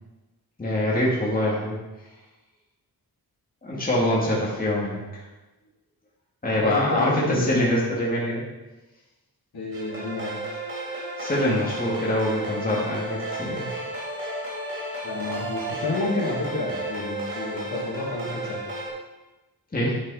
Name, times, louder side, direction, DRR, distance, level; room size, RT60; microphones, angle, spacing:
voice 1, 0.6-1.8 3.6-5.2 6.4-8.4 11.2-13.7 19.7-20.0, left 1 dB, 20° left, -5 dB, 2.0 m, -24 dB
voice 2, 6.6-7.6 9.5-10.3 15.0-18.6, left 2 dB, 70° left, -4 dB, 2.9 m, -29 dB
sound 1, 9.7-18.9, right 1 dB, 35° right, 3.8 m, -33 dB
10.5 x 8.0 x 4.1 m, 1.1 s
wide cardioid pair, 180°, 39 cm